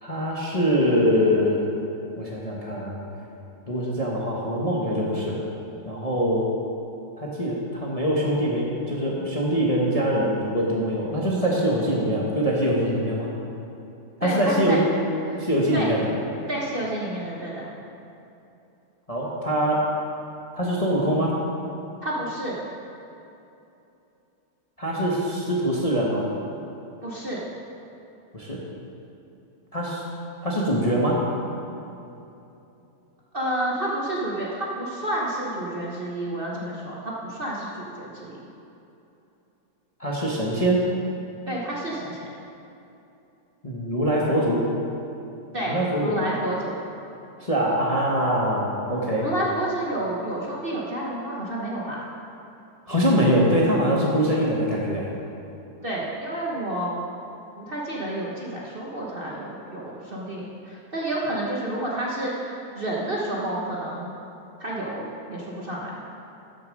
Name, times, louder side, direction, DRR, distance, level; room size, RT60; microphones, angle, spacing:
voice 1, 0.0-1.6 2.2-3.0 3.7-5.4 5.8-6.5 7.2-13.3 14.2-14.8 15.4-16.1 19.1-19.8 20.5-21.3 24.8-26.2 28.3-28.6 29.7-30.0 30.4-31.2 40.0-40.9 43.6-44.7 45.7-46.2 47.4-49.3 52.9-55.1, equal, 20° left, -4 dB, 1.1 m, -23 dB
voice 2, 14.2-14.8 15.3-15.4 15.7-15.9 16.5-17.7 22.0-22.6 27.0-27.4 33.3-38.4 41.5-42.3 45.5-46.8 49.2-52.0 55.8-56.9 57.6-64.1 64.6-65.9, right 1 dB, 35° right, -5 dB, 1.2 m, -30 dB
13.0 x 6.8 x 5.2 m, 2.8 s
omnidirectional pair, 2.1 m